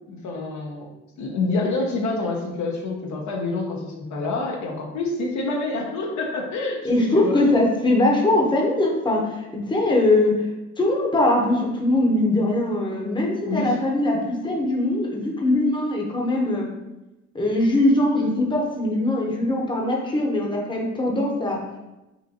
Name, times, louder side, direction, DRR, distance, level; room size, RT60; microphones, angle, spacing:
voice 1, 0.1-0.9 1.2-7.6 13.5-13.7, left 3 dB, 70° left, 0 dB, 0.9 m, -27 dB
voice 2, 6.8-10.4 10.8-16.7 17.3-21.6, left 1 dB, 15° left, -1 dB, 0.9 m, -21 dB
5.5 x 2.6 x 2.9 m, 1.0 s
cardioid pair, 90°, 30 cm